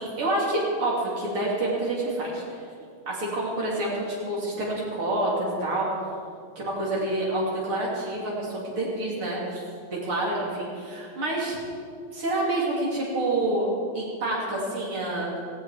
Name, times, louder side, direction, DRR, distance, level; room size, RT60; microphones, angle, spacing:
voice 1, 0.0-2.6 3.1-5.9 6.6-9.6 9.9-11.6 12.1-13.7 13.9-15.4, right 1 dB, 80° right, -5 dB, 4.1 m, -28 dB
17.0 x 16.0 x 5.1 m, 2.3 s
omnidirectional pair, 2.3 m